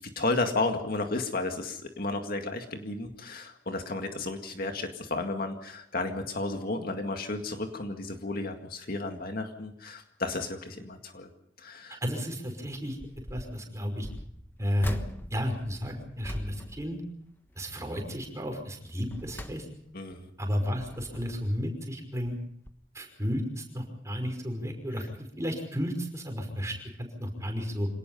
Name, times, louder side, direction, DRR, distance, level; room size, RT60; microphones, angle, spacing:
voice 1, 0.2-11.3 11.6-12.0 19.9-20.3, left 2 dB, 50° left, 4 dB, 2.1 m, -33 dB
voice 2, 12.0-13.0 13.3-14.1 14.6-15.0 15.3-17.0 17.6-19.7 20.4-22.3 22.9-27.9, equal, 15° right, 3 dB, 5.4 m, -32 dB
sound 1, 12.9-13.6 14.0-17.7 18.0-18.3 18.8-20.1 20.6-21.6 22.2-22.4 22.7-22.8, equal, 10° left, 1.2 m, -42 dB
26.5 x 18.5 x 5.6 m, 0.70 s
head